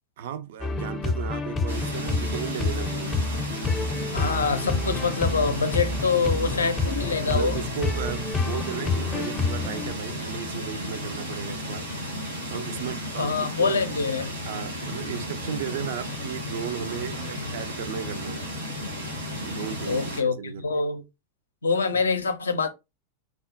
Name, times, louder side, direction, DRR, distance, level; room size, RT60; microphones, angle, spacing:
voice 1, 0.2-3.2 7.2-11.9 12.5-13.8 14.4-18.4 19.4-20.7 21.9-22.0, right 9 dB, 55° right, 0.4 m, -35 dB
sound 1, 0.6-9.9, left 3 dB, 15° left, 0.5 m, -28 dB
sound 2, 1.7-20.2, left 1 dB, 80° right, 1.3 m, -34 dB
voice 2, 4.1-7.6 13.2-14.4 19.9-21.0 21.6-22.7, left 4 dB, 70° left, 0.4 m, -25 dB
3.4 x 2.1 x 2.6 m
figure-of-eight pair, 90°, 0 cm